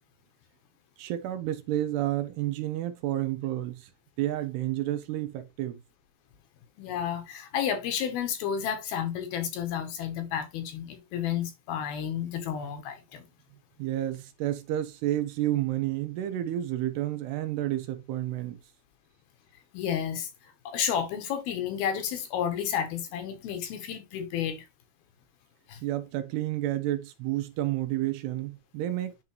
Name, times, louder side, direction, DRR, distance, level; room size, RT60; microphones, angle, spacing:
voice 1, 1.0-3.9 4.2-5.8 13.8-18.6 25.8-29.2, right 14 dB, 80° right, 2.9 m, -30 dB
voice 2, 6.8-13.2 19.7-24.7 25.7-25.8, left 8 dB, 70° left, 2.7 m, -31 dB
10.5 x 3.8 x 3.0 m
omnidirectional pair, 4.8 m